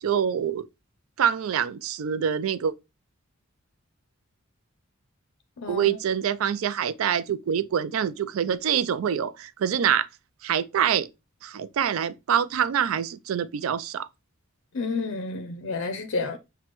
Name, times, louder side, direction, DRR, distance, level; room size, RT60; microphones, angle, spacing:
voice 1, 0.0-0.7 1.2-2.7 5.7-10.1 10.4-11.1 11.4-14.1, right 8 dB, 80° right, 0.4 m, -25 dB
voice 2, 5.6-6.0 14.7-16.4, left 4 dB, 65° left, 0.5 m, -30 dB
6.0 x 2.2 x 3.0 m
head